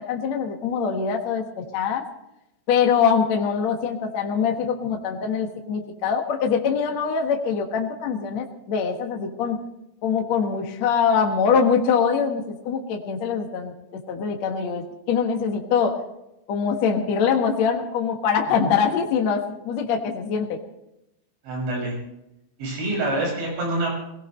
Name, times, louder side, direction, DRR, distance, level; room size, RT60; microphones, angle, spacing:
voice 1, 0.0-2.0 2.7-9.6 10.0-13.7 14.1-15.9 16.5-20.6, left 6 dB, 60° left, 2 dB, 1.9 m, -23 dB
voice 2, 21.4-22.0 22.6-23.9, right 2 dB, 80° right, -2 dB, 9.0 m, -26 dB
23.5 x 18.0 x 3.2 m, 0.87 s
omnidirectional pair, 5.2 m